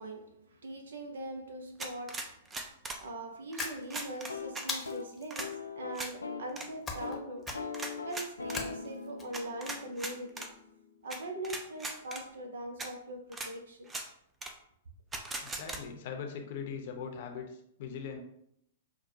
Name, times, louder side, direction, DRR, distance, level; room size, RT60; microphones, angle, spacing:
voice 1, 0.0-7.6 8.0-10.5 11.0-13.9, right 1 dB, 70° right, 0.7 m, -42 dB
sound 1, 1.8-3.0 3.5-4.7 5.3-5.5 5.9-6.1 6.5-6.7 7.5-8.6 9.3-10.5 11.1-11.2 11.4-12.2 12.8-12.9 13.3-13.5 13.9-14.1 14.4-14.5 15.1-15.8, right 2 dB, 15° right, 0.5 m, -39 dB
sound 2, 3.6-4.2 4.7-5.3 6.9-7.2 7.4-7.9 8.5-9.2, left 4 dB, 15° left, 0.9 m, -39 dB
sound 3, 4.2-6.5 6.8-7.2 7.5-11.4, left 5 dB, 85° left, 0.4 m, -42 dB
voice 2, 15.4-18.2, left 6 dB, 50° left, 0.7 m, -41 dB
5.9 x 2.2 x 2.7 m
figure-of-eight pair, 110°, 0 cm